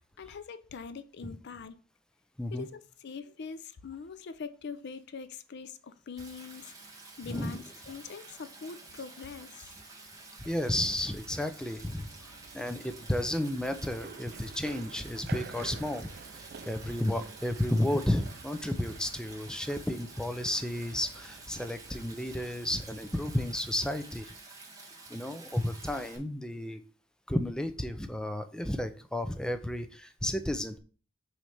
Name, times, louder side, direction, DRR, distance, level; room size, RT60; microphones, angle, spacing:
voice 1, 0.0-1.8 2.5-9.7, left 5 dB, 60° left, 0.5 m, -43 dB
Stream, 6.2-26.2, right 3 dB, 15° right, 1.5 m, -50 dB
voice 2, 7.3-7.6 10.4-24.3 25.1-26.8 27.3-30.8, left 1 dB, 5° left, 0.5 m, -32 dB
Run, 12.0-23.5, right 5 dB, 55° right, 0.5 m, -50 dB
6.0 x 3.2 x 5.6 m
head